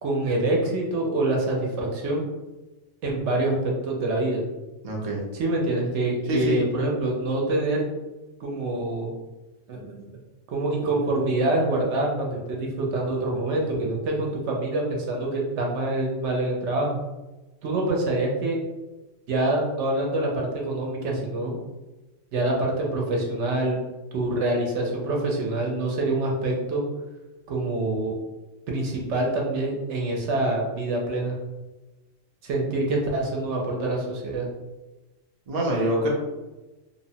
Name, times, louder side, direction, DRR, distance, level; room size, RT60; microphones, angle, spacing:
voice 1, 0.0-2.3 3.0-4.4 5.3-7.9 8.4-9.1 9.7-10.1 10.5-17.0 17.6-18.6 19.3-21.6 22.3-23.8 24.1-26.8 27.5-28.1 28.7-31.3 32.4-34.5, right 2 dB, 65° right, -1 dB, 0.9 m, -26 dB
voice 2, 4.8-5.2 6.3-6.6 35.5-36.1, right 1 dB, 50° right, -2 dB, 0.4 m, -25 dB
2.8 x 2.0 x 2.7 m, 1.1 s
omnidirectional pair, 1.3 m